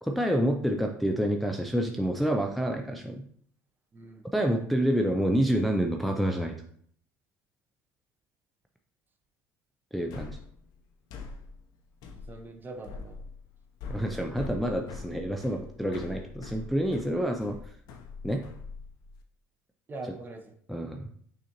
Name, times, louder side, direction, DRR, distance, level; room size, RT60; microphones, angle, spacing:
voice 1, 0.0-3.2 4.3-6.6 9.9-10.4 13.9-17.6 18.2-18.4 20.7-21.1, equal, ahead, 2 dB, 0.4 m, -28 dB
voice 2, 3.9-4.2 12.1-13.2 19.9-20.5, right 2 dB, 25° right, 5 dB, 0.8 m, -42 dB
sound 1, 10.1-19.2, left 4 dB, 65° left, 0.6 m, -43 dB
6.3 x 2.6 x 2.9 m, 0.63 s
supercardioid pair, 90°, 7 cm